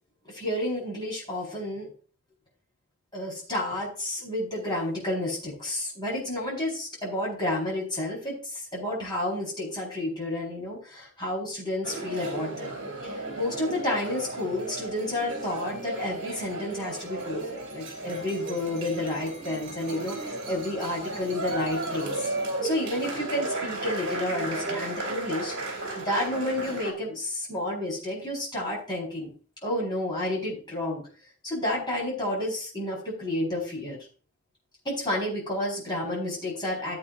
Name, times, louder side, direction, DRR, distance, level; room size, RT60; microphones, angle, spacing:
voice 1, 0.3-1.9 3.1-12.7 13.0-22.3 22.6-25.5 25.9-29.3 29.6-31.0 31.4-34.0 34.8-37.0, left 1 dB, 20° left, -5 dB, 4.7 m, -30 dB
sound 1, 11.8-26.9, right 2 dB, 55° right, 2.8 m, -34 dB
14.5 x 8.2 x 2.6 m, 0.39 s
head